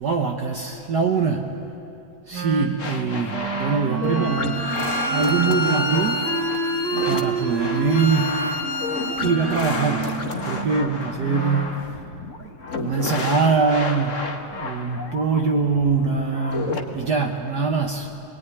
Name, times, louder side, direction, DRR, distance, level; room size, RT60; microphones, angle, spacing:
voice 1, 0.0-1.5 2.3-4.7 5.1-6.3 7.1-8.4 9.2-11.9 12.4-12.5 12.8-18.1, right 5 dB, 75° right, 3 dB, 0.9 m, -23 dB
Wind instrument woodwind instrument, 2.3-11.8, right 4 dB, 45° right, 1.7 m, -29 dB
sound 1, 2.8-16.8, left 4 dB, 35° left, 1.2 m, -31 dB
Bowed string instrument, 4.0-9.4, left 2 dB, 55° left, 1.8 m, -29 dB
25.0 x 20.5 x 9.8 m, 2.8 s
omnidirectional pair, 3.3 m